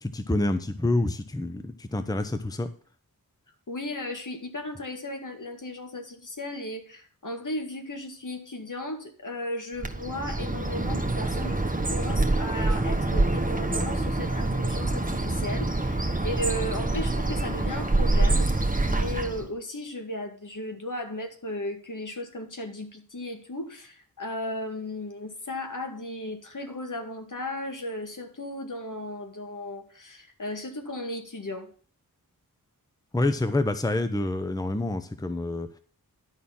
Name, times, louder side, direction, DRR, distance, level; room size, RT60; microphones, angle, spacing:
voice 1, 0.0-2.7 33.1-35.8, left 2 dB, 10° left, 0.8 m, -27 dB
voice 2, 3.7-31.7, left 1 dB, 55° left, 2.0 m, -35 dB
Bird, 9.8-19.5, right 2 dB, 20° right, 1.5 m, -26 dB
11.0 x 4.2 x 7.2 m
cardioid pair, 45°, 36 cm